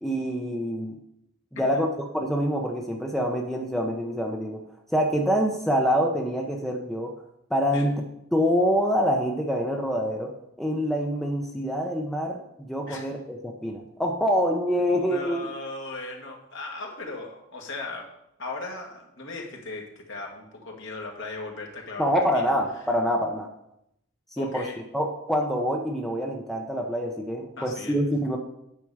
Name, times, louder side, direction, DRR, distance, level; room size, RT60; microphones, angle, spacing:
voice 1, 0.0-1.0 1.5-1.9 2.1-4.6 4.9-7.1 7.5-8.0 8.3-10.3 10.6-15.5 22.0-23.5 24.4-24.7 24.9-28.4, equal, ahead, 0 dB, 0.7 m, -26 dB
voice 2, 14.8-18.1 18.4-22.5 22.9-23.0 24.4-24.8 27.6-28.0, left 3 dB, 65° left, 0 dB, 1.8 m, -37 dB
9.3 x 6.0 x 4.8 m, 0.79 s
head